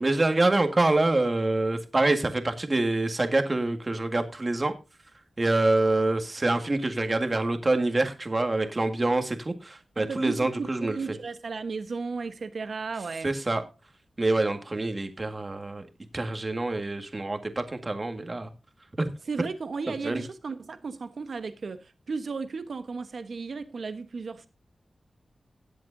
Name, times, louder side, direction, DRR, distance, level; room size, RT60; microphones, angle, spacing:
voice 1, 0.0-4.7 5.4-11.0 13.2-13.6 14.2-15.8 16.1-18.5 19.0-19.1 19.9-20.2, right 2 dB, 35° right, 1.8 m, -26 dB
voice 2, 10.0-13.4 19.3-24.5, right 4 dB, 70° right, 1.2 m, -34 dB
17.5 x 7.7 x 2.7 m
cardioid pair, 65°, 0 cm